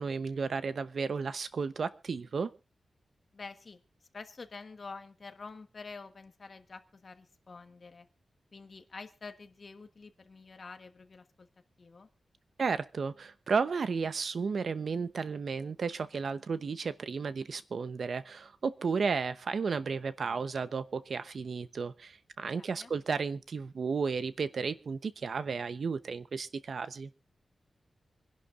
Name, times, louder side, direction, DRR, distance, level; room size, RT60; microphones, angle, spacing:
voice 1, 0.0-2.5 12.6-27.1, right 5 dB, 60° right, 13 dB, 0.8 m, -33 dB
voice 2, 3.3-3.8 4.1-8.1 8.5-11.5 11.8-12.1 22.5-22.9, left 4 dB, 45° left, 8 dB, 1.2 m, -48 dB
26.5 x 11.0 x 2.5 m, 0.29 s
wide cardioid pair, 140°, 0 cm